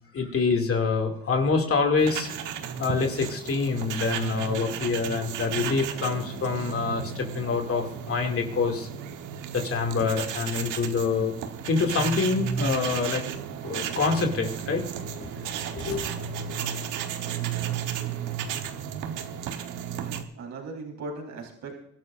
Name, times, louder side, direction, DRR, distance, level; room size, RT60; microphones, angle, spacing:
voice 1, 0.1-2.3 2.8-8.9 9.5-11.3 11.7-13.2 13.6-14.9 15.7-16.1, left 4 dB, 50° left, 3 dB, 2.5 m, -26 dB
sound 1, 2.0-20.2, right 8 dB, 85° right, 1.3 m, -33 dB
voice 2, 17.4-18.1 20.0-21.8, right 3 dB, 65° right, 1 dB, 4.1 m, -40 dB
24.5 x 12.0 x 2.6 m, 0.72 s
cardioid pair, 90°, 30 cm